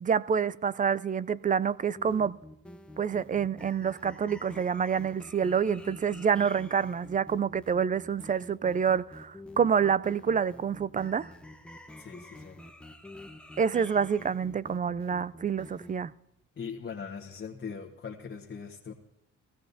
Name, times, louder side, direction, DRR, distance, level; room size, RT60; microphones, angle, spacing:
voice 1, 0.0-2.4 3.0-11.3 13.6-16.1, right 7 dB, 30° right, 0.4 m, -27 dB
sound 1, 1.8-15.9, left 1 dB, 5° left, 1.1 m, -48 dB
voice 2, 12.0-12.6 16.6-18.9, left 6 dB, 35° left, 1.3 m, -40 dB
17.0 x 15.0 x 2.7 m
cardioid pair, 90°, 30 cm